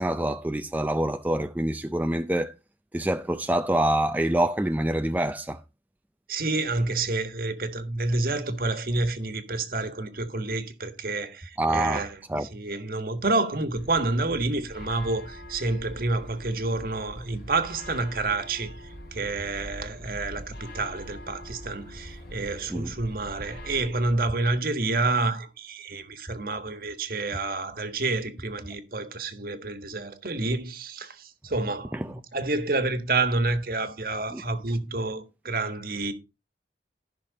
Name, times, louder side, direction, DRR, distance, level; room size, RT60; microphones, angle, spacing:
voice 1, 0.0-2.5 2.9-5.6 11.6-12.5 22.7-22.9 31.9-32.1 34.3-34.4, right 1 dB, 10° right, 0.4 m, -26 dB
voice 2, 6.3-12.1 12.4-18.7 19.1-36.1, right 2 dB, 55° right, 1.5 m, -29 dB
sound 1, 13.7-23.9, equal, 60° left, 2.8 m, -43 dB
14.0 x 6.1 x 4.1 m
head